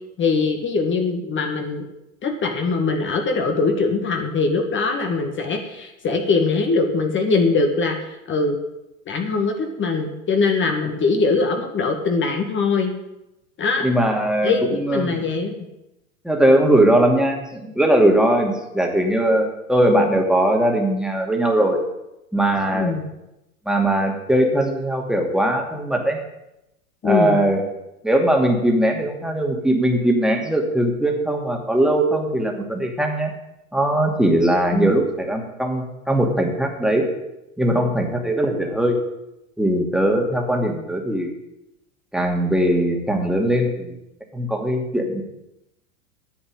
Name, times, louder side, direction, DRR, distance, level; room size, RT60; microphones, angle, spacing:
voice 1, 0.2-1.9 2.2-8.6 9.1-12.9 13.6-13.9 14.4-15.7 22.7-23.1 27.0-27.4 34.7-34.9, left 4 dB, 25° left, 4 dB, 2.0 m, -22 dB
voice 2, 13.8-14.5 14.8-15.2 16.2-21.8 22.3-23.0 23.7-26.2 27.0-27.6 28.0-33.3 33.7-37.1 37.6-39.0 39.6-41.3 42.1-44.0 44.3-45.2, right 1 dB, ahead, 1 dB, 2.5 m, -20 dB
10.0 x 7.9 x 8.8 m, 0.91 s
hypercardioid pair, 95°, 42 cm